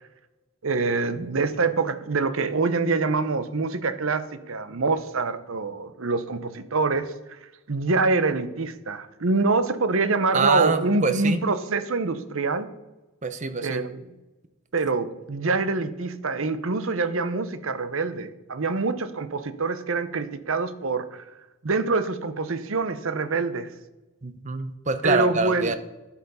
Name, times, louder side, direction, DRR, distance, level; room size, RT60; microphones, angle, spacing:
voice 1, 0.6-7.4 7.7-12.7 13.6-14.0 14.7-21.2 21.6-23.7 25.0-25.7, right 3 dB, 65° right, 12 dB, 0.8 m, -25 dB
voice 2, 10.3-11.4 13.2-13.8 24.2-25.7, right 4 dB, 30° right, 10 dB, 0.8 m, -25 dB
11.0 x 7.8 x 5.5 m, 1.1 s
head